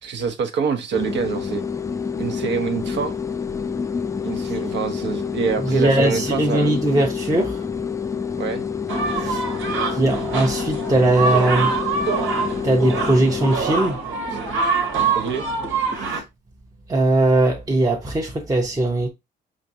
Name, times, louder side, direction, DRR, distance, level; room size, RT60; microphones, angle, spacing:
voice 1, 0.0-1.6 2.2-3.2 4.2-6.7 8.4-8.6 15.1-15.5, right 6 dB, 65° right, 0.8 m, -25 dB
sound 1, 0.9-13.6, left 6 dB, 15° left, 0.3 m, -28 dB
voice 2, 5.6-7.6 9.2-9.4 9.9-11.8 12.6-14.0 16.1-16.2 16.9-19.1, right 2 dB, 15° right, 0.7 m, -20 dB
sound 2, 8.9-16.2, right 4 dB, 85° right, 1.4 m, -24 dB
5.0 x 2.5 x 2.7 m
cardioid pair, 90°, 20 cm